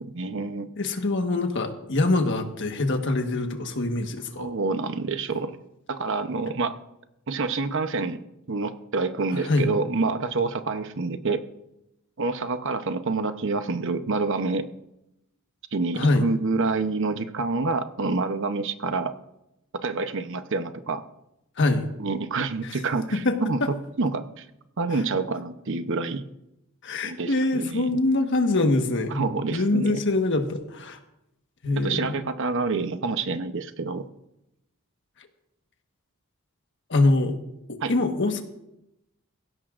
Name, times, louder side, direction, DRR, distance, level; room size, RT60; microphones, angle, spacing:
voice 1, 0.0-0.7 4.4-5.6 5.9-6.8 7.3-8.2 8.5-11.4 12.2-14.7 15.7-19.1 19.8-21.0 22.0-23.6 24.0-24.5 24.8-26.2 27.0-27.9 29.1-30.0 31.8-34.0 37.8-37.9, right 3 dB, 60° right, 10 dB, 0.8 m, -27 dB
voice 2, 0.8-4.5 9.3-9.7 15.9-16.3 21.6-21.9 22.6-22.8 23.1-23.7 24.9-25.0 26.8-29.2 29.5-31.0 31.6-32.1 36.9-37.4 37.9-38.4, left 2 dB, 60° left, 5 dB, 1.4 m, -24 dB
18.5 x 16.0 x 2.5 m, 0.86 s
head